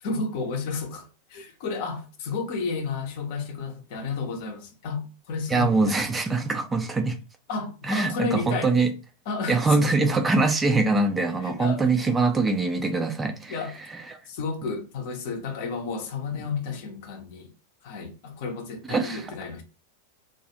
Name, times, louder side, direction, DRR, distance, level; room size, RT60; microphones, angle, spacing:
voice 1, 0.0-6.1 7.5-8.7 9.3-9.9 11.4-11.9 13.5-13.7 14.3-17.5 17.8-19.6, left 4 dB, 50° left, 0.6 m, -32 dB
voice 2, 5.5-7.2 7.9-8.9 9.5-13.6 18.9-19.2, right 3 dB, 15° right, 0.4 m, -23 dB
2.4 x 2.3 x 2.8 m
figure-of-eight pair, 90°, 0 cm